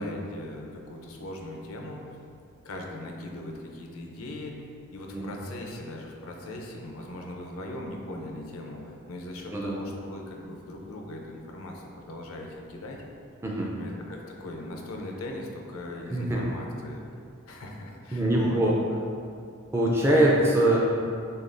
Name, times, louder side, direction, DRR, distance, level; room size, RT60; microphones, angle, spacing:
voice 1, 0.0-2.2 2.6-4.5 4.9-13.0 13.8-17.0 17.5-18.6 20.2-20.4, left 1 dB, 75° left, 1 dB, 0.5 m, -39 dB
voice 2, 16.1-16.4 18.1-19.0 19.7-20.8, right 1 dB, 10° right, -4 dB, 0.4 m, -23 dB
6.5 x 2.3 x 2.5 m, 2.4 s
head